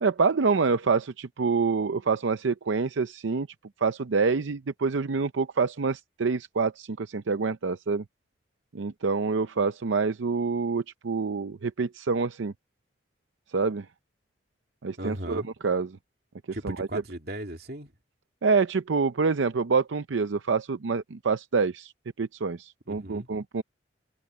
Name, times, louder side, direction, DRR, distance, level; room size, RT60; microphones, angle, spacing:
voice 1, 0.0-3.5 3.8-8.0 8.7-12.5 13.5-13.9 14.8-15.9 16.6-16.9 18.4-21.9 22.2-23.6, right 4 dB, 80° right, 0.6 m, -26 dB
voice 2, 15.0-15.5 16.5-17.9 22.9-23.3, right 1 dB, 55° right, 2.8 m, -36 dB
head